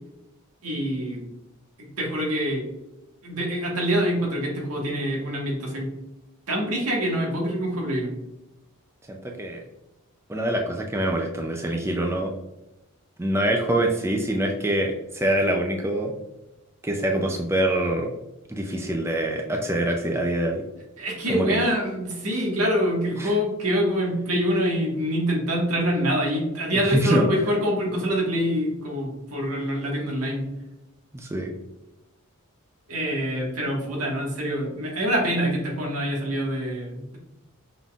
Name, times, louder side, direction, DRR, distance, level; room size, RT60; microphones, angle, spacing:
voice 1, 0.6-1.2 1.8-2.6 3.2-5.9 6.5-8.1 21.0-30.4 32.9-37.2, equal, 90° right, -2 dB, 1.6 m, -25 dB
voice 2, 9.1-9.6 10.3-12.3 13.2-16.1 16.8-18.1 18.5-20.6 21.3-21.6 22.3-22.4 23.2-23.3 26.9-27.3 31.1-31.5, right 1 dB, 10° right, 2 dB, 0.4 m, -25 dB
5.7 x 3.7 x 2.4 m, 0.94 s
head